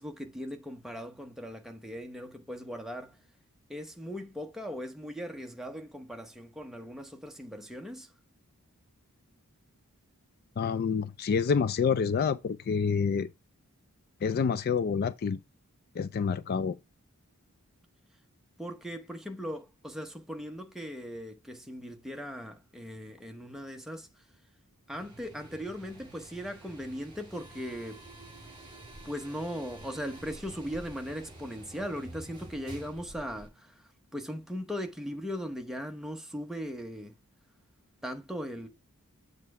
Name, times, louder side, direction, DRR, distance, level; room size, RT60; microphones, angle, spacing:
voice 1, 0.0-3.2 3.7-8.1 18.6-24.1 24.9-28.0 29.0-37.2 38.0-38.7, equal, ahead, 0.8 m, -39 dB
voice 2, 10.6-13.3 14.2-15.4 16.0-16.8, left 6 dB, 45° left, 0.3 m, -28 dB
sound 1, 24.9-33.5, right 2 dB, 25° right, 3.8 m, -49 dB
7.5 x 3.2 x 4.7 m
head